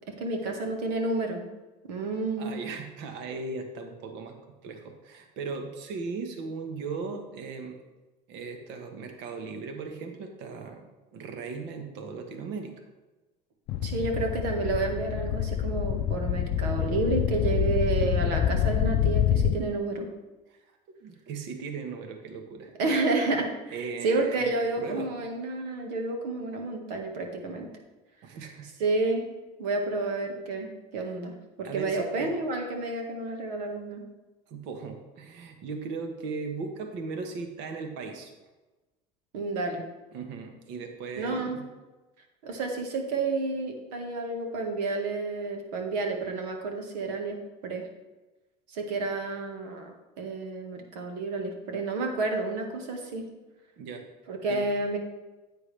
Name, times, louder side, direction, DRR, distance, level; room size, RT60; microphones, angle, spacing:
voice 1, 0.2-1.5 1.9-2.5 13.8-20.1 22.8-27.7 28.8-29.3 29.6-34.0 39.3-39.8 41.2-41.6 42.4-47.4 47.6-47.9 48.7-53.3 54.3-55.0, right 3 dB, 75° right, 3 dB, 1.9 m, -30 dB
voice 2, 2.4-4.4 4.6-7.8 8.3-12.7 20.5-20.6 20.9-22.7 23.7-24.5 24.8-25.1 28.2-28.7 31.7-32.3 34.5-38.3 40.1-41.6 53.8-54.0 54.5-54.6, right 4 dB, 60° right, 5 dB, 1.5 m, -37 dB
sound 1, 13.7-19.6, left 10 dB, 55° left, 0.6 m, -26 dB
9.6 x 8.5 x 3.4 m, 1.1 s
hypercardioid pair, 90°, 21 cm